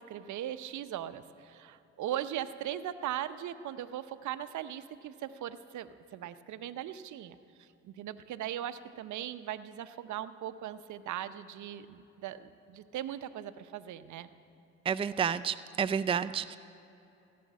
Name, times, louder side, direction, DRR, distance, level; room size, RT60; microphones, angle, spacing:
voice 1, 0.0-14.3, right 11 dB, 65° right, 12 dB, 0.7 m, -39 dB
voice 2, 14.9-16.6, right 7 dB, 15° right, 13 dB, 0.4 m, -30 dB
17.0 x 9.4 x 7.3 m, 2.9 s
hypercardioid pair, 50°, 32 cm